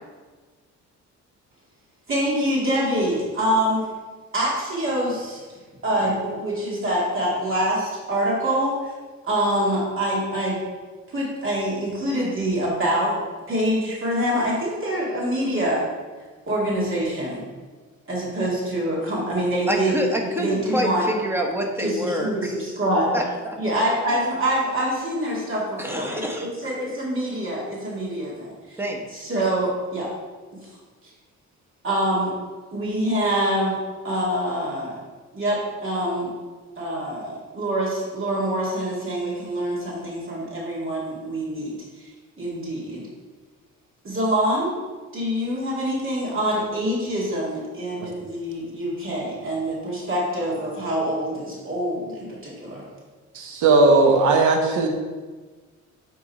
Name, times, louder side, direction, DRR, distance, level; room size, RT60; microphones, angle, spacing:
voice 1, 2.1-3.9 4.3-5.4 5.8-8.9 9.2-10.6 11.1-13.2 13.5-15.8 16.5-17.4 18.1-20.1 20.4-21.0 21.8-23.2 23.6-28.8 29.1-30.1 30.6-30.7 31.8-32.3 32.7-33.8 34.0-35.0 35.3-36.3 36.8-42.1 42.4-43.1 44.0-44.8 45.1-52.8, right 1 dB, 45° right, -5 dB, 2.3 m, -25 dB
voice 2, 19.7-22.5 23.1-23.6 25.8-26.5 28.8-29.0, equal, 10° right, 1 dB, 1.2 m, -27 dB
voice 3, 53.3-54.9, right 3 dB, 75° right, 3 dB, 1.2 m, -17 dB
8.9 x 3.8 x 4.2 m, 1.4 s
cardioid pair, 90°, 30 cm